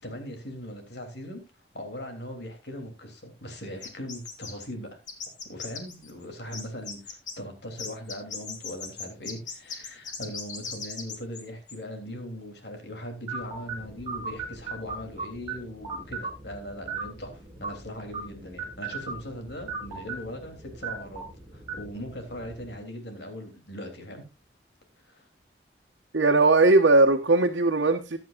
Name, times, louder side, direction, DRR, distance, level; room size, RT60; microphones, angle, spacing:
voice 1, 0.0-1.4 1.7-5.0 5.4-21.2 21.5-24.2 25.1-25.2, equal, 65° left, 5 dB, 3.3 m, -39 dB
sound 1, 3.8-4.6 5.1-6.2 6.5-7.3 7.8-11.4 11.7-11.8, left 5 dB, 40° left, 2.4 m, -38 dB
sound 2, 13.3-22.8, right 4 dB, 25° right, 6.7 m, -38 dB
voice 2, 26.1-28.2, right 2 dB, 90° right, 0 dB, 1.3 m, -19 dB
15.0 x 10.5 x 2.5 m, 0.27 s
head